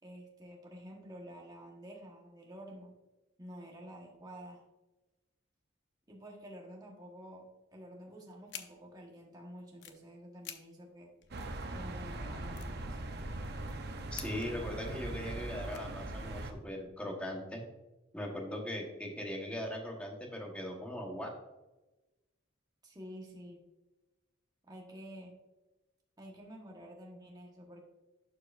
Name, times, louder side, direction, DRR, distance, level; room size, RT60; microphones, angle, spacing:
voice 1, 0.0-2.9 3.4-4.6 6.1-11.1 11.7-13.0 22.8-23.6 24.6-25.3 26.2-27.8, equal, 20° right, -1 dB, 1.2 m, -50 dB
sound 1, 8.5-8.6 9.6-10.0 10.4-10.6 10.9-11.0 11.2-11.8 12.2-12.3 12.5-13.5 14.1-14.7 15.1-15.3 15.7-16.5, left 10 dB, 55° left, 0.7 m, -48 dB
sound 2, 11.3-16.5, right 2 dB, 50° right, 0.7 m, -40 dB
voice 2, 14.1-17.6 18.1-21.3, left 1 dB, 5° left, 0 dB, 1.2 m, -39 dB
11.5 x 4.8 x 2.5 m, 1.1 s
head